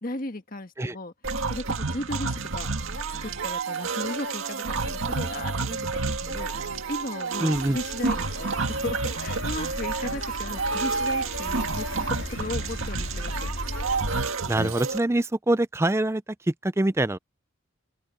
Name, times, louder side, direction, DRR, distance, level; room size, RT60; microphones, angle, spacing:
voice 1, 0.0-1.1 1.5-2.7 3.2-11.9 12.2-13.5, left 1 dB, 40° left, 1.6 m, -36 dB
sound 1, 1.2-15.0, right 4 dB, 75° right, 1.9 m, -29 dB
voice 2, 7.4-7.8 14.5-17.2, right 1 dB, 10° right, 0.4 m, -24 dB
sound 2, 7.5-14.2, left 1 dB, 60° left, 2.9 m, -37 dB
open air
head